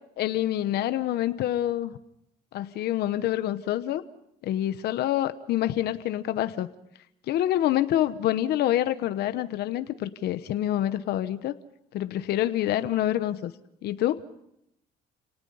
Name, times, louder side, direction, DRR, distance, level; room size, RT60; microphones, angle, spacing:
voice 1, 0.2-1.9 2.5-4.0 4.4-6.7 7.3-11.6 11.9-13.5 13.8-14.2, left 13 dB, 70° left, 11 dB, 1.0 m, -26 dB
29.5 x 18.5 x 5.6 m, 0.78 s
cardioid pair, 110°, 17 cm